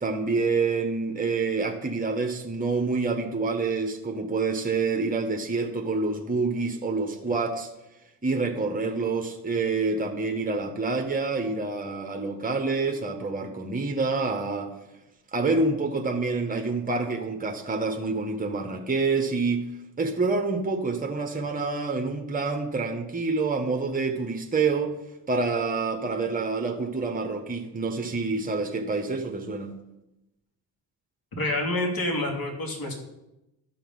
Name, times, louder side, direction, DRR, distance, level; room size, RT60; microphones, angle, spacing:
voice 1, 0.0-7.7 8.2-14.7 15.3-19.6 20.0-24.9 25.3-29.7, right 3 dB, 20° right, 3 dB, 1.4 m, -27 dB
voice 2, 31.4-32.9, left 1 dB, 50° left, 1 dB, 3.0 m, -27 dB
12.5 x 5.8 x 5.5 m, 0.94 s
supercardioid pair, 55°, 44 cm